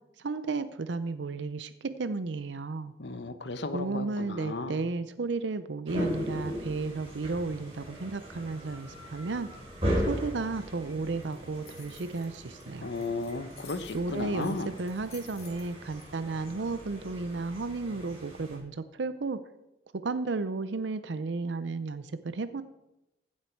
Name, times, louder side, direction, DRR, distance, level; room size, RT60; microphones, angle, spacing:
voice 1, 0.2-2.9 3.7-9.5 10.1-12.9 13.9-19.4 19.9-22.6, right 3 dB, 85° right, 13 dB, 0.6 m, -33 dB
voice 2, 3.0-4.8 12.8-14.7, left 3 dB, 80° left, 11 dB, 1.0 m, -35 dB
sound 1, 5.9-18.6, equal, 30° right, 4.3 m, -38 dB
sound 2, 11.2-16.0, left 6 dB, 35° left, 2.0 m, -53 dB
15.5 x 7.6 x 4.6 m, 0.93 s
head